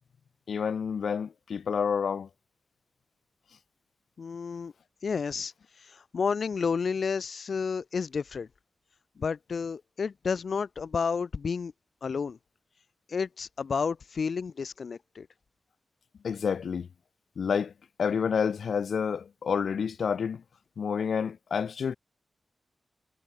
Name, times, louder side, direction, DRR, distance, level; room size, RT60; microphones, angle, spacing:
voice 1, 0.5-2.3 16.2-16.9 17.4-17.7 18.0-20.4 20.8-22.0, left 6 dB, 75° left, 0.6 m, -29 dB
voice 2, 4.2-4.7 5.0-5.5 5.8-8.5 9.2-11.7 12.0-12.4 13.1-15.3, left 5 dB, 55° left, 1.1 m, -31 dB
wide cardioid pair, 180°, 0 cm